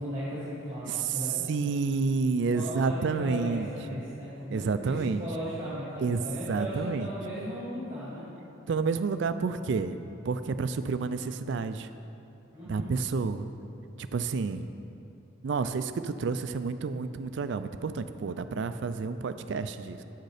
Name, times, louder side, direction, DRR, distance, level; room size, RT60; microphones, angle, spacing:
voice 1, 0.0-1.5 2.5-8.2 12.5-12.9, equal, 20° right, -10 dB, 1.9 m, -37 dB
voice 2, 1.5-4.0 4.5-5.2 6.0-7.1 8.7-10.0 10.3-11.9 12.7-13.5 14.0-14.7 15.4-20.0, right 4 dB, 60° right, 11 dB, 0.3 m, -30 dB
8.7 x 6.6 x 4.9 m, 2.8 s
head